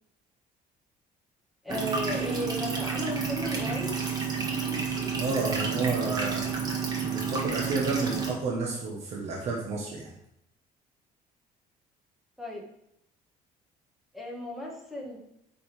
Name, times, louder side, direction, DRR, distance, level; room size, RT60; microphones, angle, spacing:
voice 1, 1.6-3.9 12.4-12.6 14.1-15.2, left 1 dB, ahead, -2 dB, 1.6 m, -35 dB
sound 1, 1.7-8.3, right 5 dB, 25° right, 1.4 m, -30 dB
voice 2, 5.2-6.5 7.0-10.1, right 3 dB, 45° right, -2 dB, 1.4 m, -31 dB
8.8 x 5.5 x 5.0 m, 0.80 s
cardioid pair, 175°, 16 cm